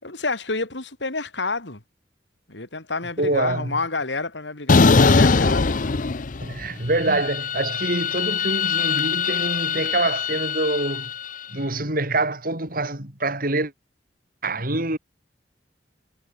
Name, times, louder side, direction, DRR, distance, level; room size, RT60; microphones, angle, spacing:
voice 1, 0.0-1.8 2.5-5.8 7.1-7.2, left 3 dB, 85° left, 3.3 m, -29 dB
voice 2, 3.2-3.8 6.4-11.1 11.5-13.7 14.4-15.0, right 2 dB, 55° right, 5.4 m, -25 dB
sound 1, 4.7-6.6 7.0-11.3, left 4 dB, 50° left, 0.7 m, -21 dB
head